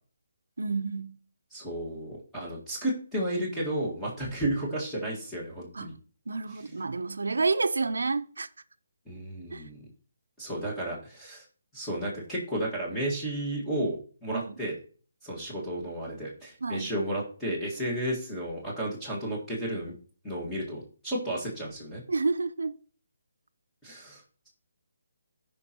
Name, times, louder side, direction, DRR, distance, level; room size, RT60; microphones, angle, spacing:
voice 1, 0.6-1.2 5.7-6.0 6.3-8.5 9.5-9.6 14.3-14.5 16.6-16.9 22.1-22.7, right 3 dB, 85° right, 0.7 m, -29 dB
voice 2, 1.5-5.9 6.5-6.8 9.1-9.8 10.4-11.4 11.7-14.8 15.2-19.9 20.2-22.0 23.8-24.5, right 1 dB, 5° left, 1.8 m, -33 dB
14.5 x 5.2 x 3.0 m
hypercardioid pair, 160°, 0 cm